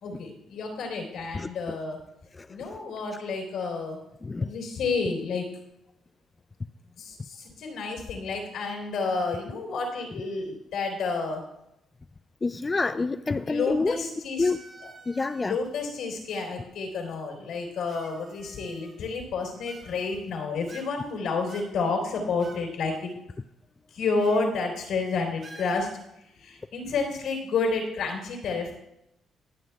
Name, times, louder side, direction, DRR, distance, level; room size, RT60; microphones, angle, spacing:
voice 1, 0.0-2.0 2.5-4.0 4.4-5.5 7.0-11.4 13.5-14.5 15.4-23.1 23.9-25.9 26.4-28.7, left 4 dB, 80° left, 1 dB, 3.5 m, -30 dB
voice 2, 12.4-14.0 14.4-14.6 15.1-15.6, left 3 dB, 25° left, 10 dB, 0.3 m, -27 dB
sound 1, 14.4-15.7 16.7-16.8 17.9-19.2 19.6-20.3 20.7-21.1 21.5-22.7 22.9-23.0 24.2-24.5 24.8-24.9 25.4-26.1, right 3 dB, 45° right, 2.0 m, -49 dB
21.5 x 7.2 x 2.3 m, 0.82 s
cardioid pair, 90°, 0 cm